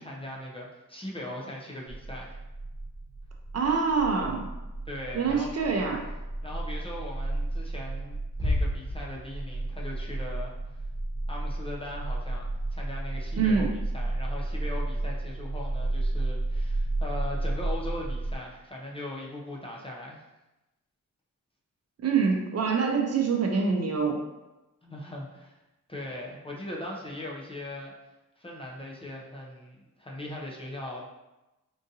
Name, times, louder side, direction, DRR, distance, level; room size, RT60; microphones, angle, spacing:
voice 1, 0.0-2.4 4.9-5.5 6.4-10.5 11.3-20.2 24.8-25.6 25.9-27.9 28.4-31.0, left 1 dB, 15° left, -3 dB, 0.5 m, -39 dB
sound 1, 1.9-18.3, right 2 dB, 30° right, 1.2 m, -33 dB
voice 2, 3.5-4.5 5.1-6.1 13.3-13.7 22.0-24.2, right 5 dB, 50° right, 1 dB, 0.5 m, -25 dB
sound 2, 8.4-9.8, left 1 dB, 10° right, 1.0 m, -29 dB
3.7 x 2.5 x 2.6 m, 1.0 s
wide cardioid pair, 100°, 34 cm